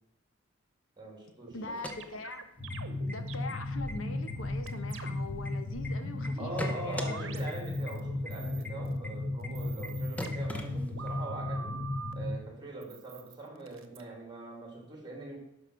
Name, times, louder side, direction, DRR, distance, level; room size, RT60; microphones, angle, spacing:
voice 1, 1.0-2.0 6.4-11.8 12.1-15.4, right 2 dB, 25° right, 1 dB, 2.6 m, -42 dB
voice 2, 1.5-2.5 3.1-7.2, left 3 dB, 85° left, 8 dB, 1.1 m, -42 dB
sound 1, 1.5-5.4 5.7-8.0 8.3-9.0 9.4-12.1 12.8-14.0, right 4 dB, 80° right, 1.0 m, -45 dB
sound 2, 1.6-2.7 3.1-3.2 3.5-3.9 4.3-5.9 6.2-7.1 7.5-7.6 7.9-8.0 8.2-8.3 8.6-8.7 9.0-9.1 9.4-9.5 9.8-9.9 10.2-11.2, left 1 dB, 5° left, 0.9 m, -40 dB
sound 3, 2.6-12.4, left 2 dB, 40° left, 3.0 m, -35 dB
11.5 x 5.3 x 6.3 m, 0.82 s
head